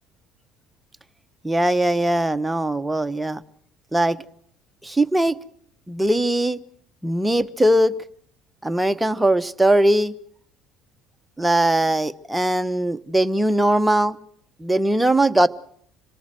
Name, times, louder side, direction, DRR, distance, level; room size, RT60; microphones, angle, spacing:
voice 1, 1.4-3.4 3.9-4.2 4.8-5.4 5.9-6.6 7.0-7.9 8.6-10.1 11.4-14.2 14.6-15.5, right 1 dB, 10° right, 10 dB, 1.2 m, -20 dB
26.5 x 19.0 x 7.8 m, 0.66 s
hypercardioid pair, 65°, 0 cm